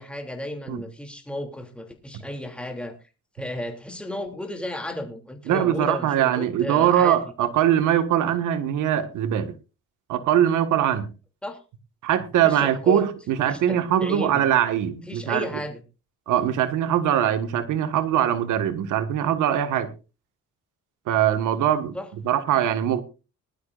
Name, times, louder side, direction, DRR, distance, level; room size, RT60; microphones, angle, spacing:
voice 1, 0.0-2.9 3.4-7.3 11.4-11.6 12.4-13.1 13.4-14.5 15.1-15.8 21.9-22.1, left 1 dB, 5° left, 5 dB, 2.9 m, -33 dB
voice 2, 5.5-9.5 10.1-11.1 12.0-15.5 16.3-19.9 21.1-22.0 22.2-23.0, right 10 dB, 85° right, 10 dB, 1.7 m, -22 dB
20.5 x 12.0 x 2.5 m, 0.31 s
cardioid pair, 90°, 30 cm